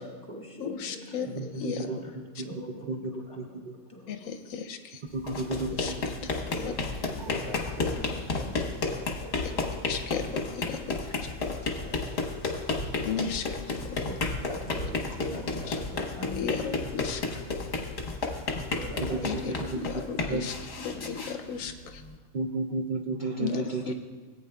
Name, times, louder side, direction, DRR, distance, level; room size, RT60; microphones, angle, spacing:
voice 1, 0.0-4.5 6.5-9.9 10.3-10.6 10.8-12.6 13.6-13.8 14.0-16.7 17.9-20.3 20.9-21.2 22.2-22.3 23.4-23.9, left 1 dB, 20° left, -2 dB, 1.8 m, -44 dB
voice 2, 0.6-1.3 1.6-1.9 4.1-5.0 5.7-5.9 6.6-6.7 9.4-9.5 9.9-10.8 13.0-14.0 15.7-15.8 16.3-17.2 19.2-19.4 19.7-20.0 20.3-22.0 23.4-23.9, left 6 dB, 75° left, 8 dB, 1.0 m, -35 dB
voice 3, 1.3-3.7 5.1-6.1 7.2-7.3 18.6-18.7 19.1-19.9 20.3-20.4 22.3-23.9, right 3 dB, 55° right, 4 dB, 0.5 m, -33 dB
sound 1, 5.1-22.1, left 3 dB, 50° left, 1.2 m, -32 dB
18.0 x 8.9 x 2.2 m, 1.5 s
omnidirectional pair, 1.4 m